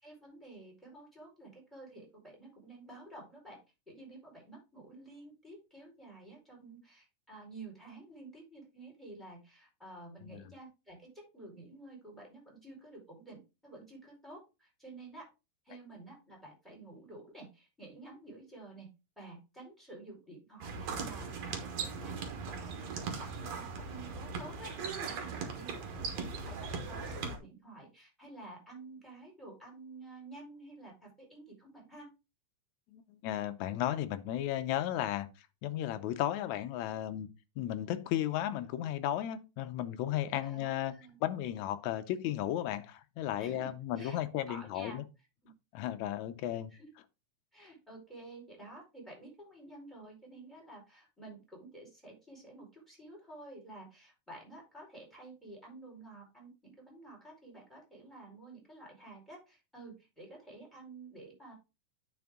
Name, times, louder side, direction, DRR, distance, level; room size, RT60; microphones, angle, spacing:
voice 1, 0.0-3.6 3.9-15.3 15.6-18.9 19.2-32.1 40.4-41.2 43.4-44.2 44.5-45.0 45.4-45.5 46.7-46.9 47.5-61.5, right 2 dB, ahead, 4.3 m, -51 dB
voice 2, 10.2-10.5 32.9-35.3 35.6-37.3 37.6-40.9 41.2-45.0 45.7-46.7, left 12 dB, 75° left, 1.9 m, -34 dB
sound 1, 20.6-27.4, right 5 dB, 60° right, 2.5 m, -39 dB
9.5 x 5.3 x 3.6 m
omnidirectional pair, 3.6 m